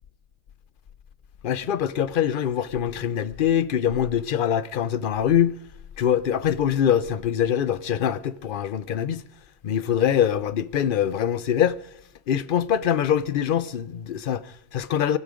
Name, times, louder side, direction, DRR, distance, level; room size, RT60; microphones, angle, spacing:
voice 1, 1.4-5.6 6.0-9.2 9.6-11.8 12.3-15.2, left 9 dB, 55° left, 0.8 m, -23 dB
24.0 x 11.0 x 5.0 m
omnidirectional pair, 1.1 m